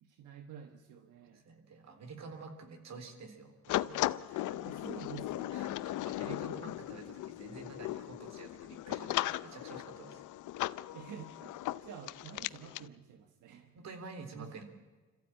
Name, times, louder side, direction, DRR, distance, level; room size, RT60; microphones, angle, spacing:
voice 1, 0.0-1.4 4.6-5.6 6.2-6.9 10.9-11.5 11.8-13.7 14.3-14.6, right 7 dB, 90° right, 6 dB, 1.5 m, -49 dB
voice 2, 1.3-4.7 5.5-10.3 13.7-14.6, right 4 dB, 60° right, 7 dB, 3.7 m, -49 dB
sound 1, 3.7-12.9, left 15 dB, 80° left, 0.6 m, -37 dB
26.0 x 14.5 x 8.9 m, 1.3 s
cardioid pair, 90°, 30 cm